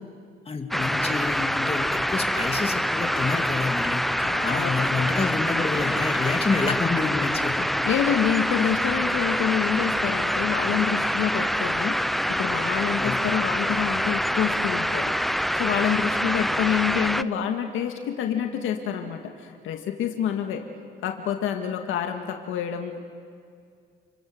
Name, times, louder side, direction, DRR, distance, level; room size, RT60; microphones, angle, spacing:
voice 1, 0.5-4.0 4.4-7.7 13.0-13.2, left 4 dB, 30° left, 4 dB, 2.7 m, -28 dB
sound 1, 0.7-17.2, equal, ahead, 0.6 m, -25 dB
voice 2, 4.2-5.3 7.8-15.1 15.6-20.6 21.0-23.0, left 9 dB, 85° left, 4 dB, 2.1 m, -27 dB
29.5 x 23.5 x 7.9 m, 2.2 s
cardioid pair, 90°, 20 cm